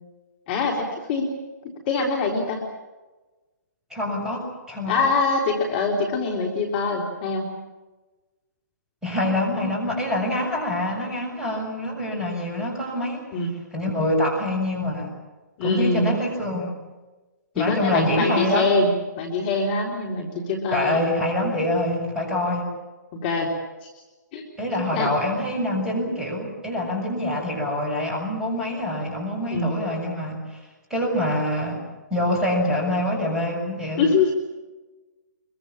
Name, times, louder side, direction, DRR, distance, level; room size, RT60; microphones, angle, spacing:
voice 1, 0.5-1.3 1.9-2.7 4.9-7.5 13.3-13.5 15.6-16.1 17.5-18.9 19.2-21.0 23.2-23.5 23.8-23.9 24.3-24.4 24.9-25.1 29.5-29.8 34.0-34.3, left 3 dB, 30° left, 0 dB, 3.5 m, -24 dB
voice 2, 3.9-5.1 9.0-13.3 13.7-15.1 15.6-16.8 17.6-18.7 20.7-22.8 24.6-30.4 30.9-31.8 32.1-34.1, left 1 dB, 5° right, -2 dB, 7.1 m, -25 dB
25.0 x 23.0 x 7.4 m, 1.2 s
figure-of-eight pair, 130°, 10 cm